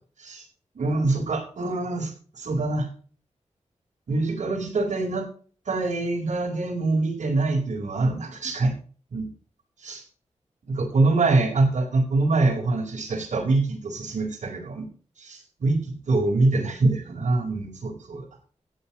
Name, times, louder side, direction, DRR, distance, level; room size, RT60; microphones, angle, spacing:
voice 1, 0.7-2.1 2.3-2.9 4.1-5.2 5.7-8.7 9.1-9.3 9.8-10.0 10.7-14.8 15.2-18.2, right 3 dB, 85° right, -1 dB, 4.5 m, -24 dB
16.0 x 9.5 x 3.1 m, 0.40 s
wide cardioid pair, 85°, 12 cm